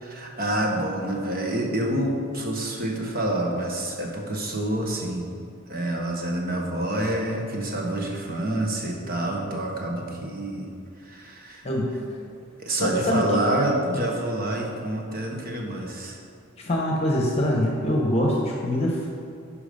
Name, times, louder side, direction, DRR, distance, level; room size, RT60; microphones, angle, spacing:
voice 1, 0.0-5.3 5.7-10.7 11.1-11.6 12.6-16.2, right 1 dB, 45° right, 0 dB, 1.3 m, -27 dB
voice 2, 12.7-13.4 16.6-19.1, equal, 30° left, -1 dB, 1.0 m, -24 dB
10.5 x 5.0 x 5.2 m, 2.4 s
head